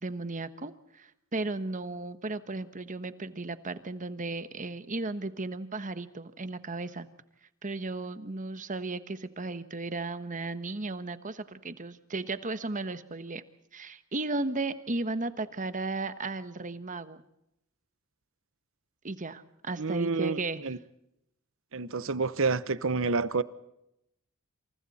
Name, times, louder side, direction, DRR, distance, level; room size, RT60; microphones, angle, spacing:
voice 1, 0.0-7.1 7.6-13.4 13.7-17.2 19.0-20.6, right 2 dB, 35° right, 1.3 m, -35 dB
voice 2, 19.8-20.8 21.7-23.4, right 4 dB, 65° right, 1.0 m, -29 dB
28.0 x 27.5 x 4.3 m
head